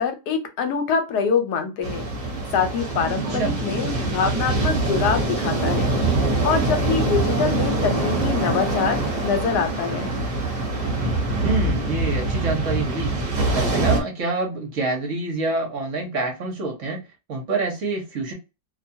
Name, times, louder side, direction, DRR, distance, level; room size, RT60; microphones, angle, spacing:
voice 1, 0.0-2.1 2.5-5.9 6.4-10.1, left 6 dB, 80° left, 1.2 m, -24 dB
sound 1, 1.8-14.0, right 2 dB, 35° right, 0.8 m, -24 dB
voice 2, 11.4-13.1 13.5-17.0 17.3-18.3, right 3 dB, 60° right, 0.9 m, -26 dB
2.6 x 2.2 x 2.6 m
omnidirectional pair, 1.7 m